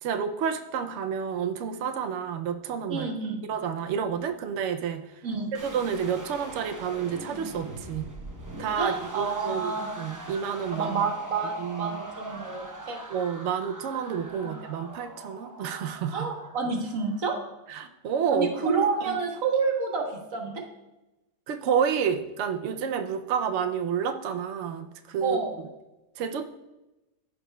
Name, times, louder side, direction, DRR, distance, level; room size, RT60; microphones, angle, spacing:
voice 1, 0.0-3.1 3.5-5.0 5.6-8.1 8.6-11.1 11.6-12.0 13.1-16.3 17.7-18.8 19.0-19.2 21.5-25.4 26.2-26.4, right 7 dB, 80° right, 7 dB, 0.6 m, -30 dB
voice 2, 2.9-3.4 5.2-5.5 8.8-10.0 10.7-13.0 16.1-17.4 18.3-20.6 25.2-25.6, right 4 dB, 55° right, 2 dB, 1.5 m, -29 dB
sound 1, 5.5-17.6, right 1 dB, 30° right, 0.3 m, -42 dB
14.0 x 4.9 x 2.2 m, 0.99 s
omnidirectional pair, 1.8 m